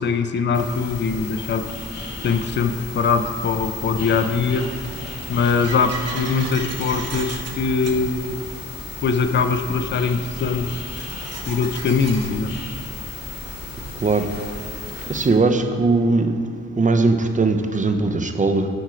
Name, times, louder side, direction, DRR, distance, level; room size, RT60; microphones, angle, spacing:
voice 1, 0.0-1.7 2.2-4.7 5.3-8.4 9.0-10.7 11.5-12.6, left 5 dB, 40° left, 9 dB, 0.4 m, -22 dB
sound 1, 0.5-15.3, left 3 dB, 55° left, 2.3 m, -34 dB
sound 2, 1.9-2.0 2.9-12.3, right 4 dB, 60° right, 0.9 m, -38 dB
voice 2, 15.1-16.3 16.8-18.7, right 3 dB, 25° right, 6 dB, 0.5 m, -19 dB
11.0 x 4.4 x 4.9 m, 2.2 s
wide cardioid pair, 135°, 29 cm